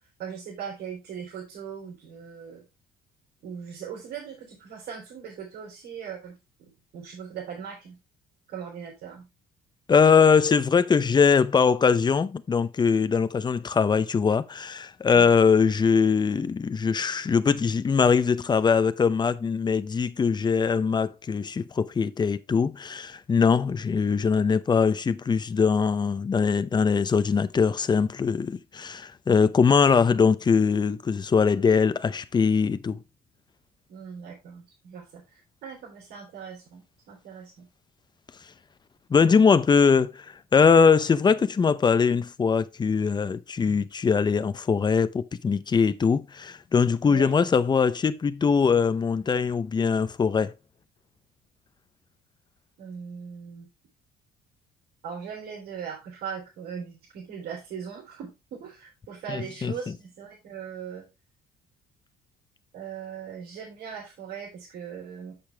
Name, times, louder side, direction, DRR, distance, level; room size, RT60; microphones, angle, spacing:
voice 1, 0.2-2.6 3.4-6.3 6.6-7.9 8.5-9.2 33.9-37.7 47.0-47.4 52.8-53.7 55.0-61.1 62.7-65.3, right 7 dB, 70° right, 3.9 m, -39 dB
voice 2, 9.9-33.0 39.1-40.3 40.5-50.5 59.3-59.9, left 5 dB, 25° left, 0.7 m, -22 dB
7.8 x 6.8 x 3.5 m
cardioid pair, 110°, 17 cm